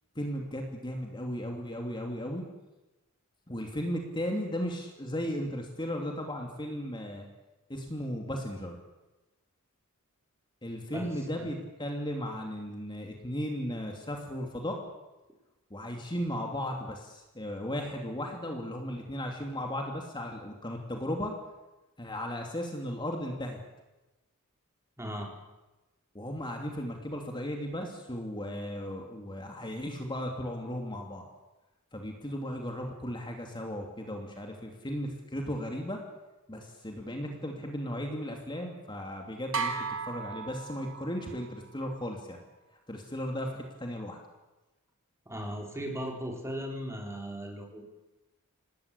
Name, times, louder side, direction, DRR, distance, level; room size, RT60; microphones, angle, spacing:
voice 1, 0.1-2.4 3.5-7.3 7.7-8.7 10.6-14.8 15.7-21.3 22.0-23.6 26.1-31.2 31.9-36.0 36.5-42.4 42.9-44.2, equal, 20° left, 2 dB, 3.0 m, -36 dB
voice 2, 25.0-25.3 45.3-47.8, equal, 15° right, 2 dB, 4.5 m, -37 dB
sound 1, 39.5-41.3, right 5 dB, 65° right, 2.9 m, -34 dB
27.5 x 19.0 x 8.6 m, 1.1 s
head